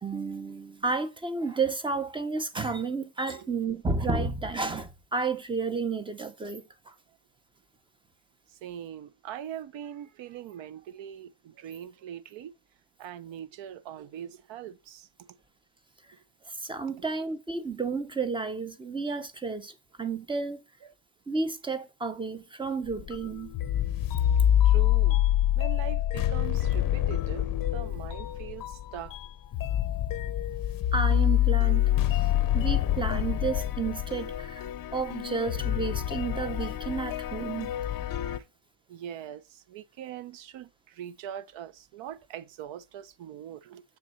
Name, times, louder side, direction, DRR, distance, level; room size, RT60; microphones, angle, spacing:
voice 1, 0.0-6.9 16.5-20.6 21.3-23.5 30.9-32.3 32.5-34.6 34.9-37.7, right 4 dB, 10° right, 0.5 m, -31 dB
voice 2, 8.5-12.5 13.0-15.1 17.0-17.1 20.8-20.9 24.6-25.2 25.5-29.2 38.9-43.8, right 10 dB, 75° right, 0.8 m, -42 dB
sound 1, 22.9-38.4, left 12 dB, 45° left, 0.6 m, -26 dB
7.0 x 3.9 x 6.3 m
cardioid pair, 160°, 46 cm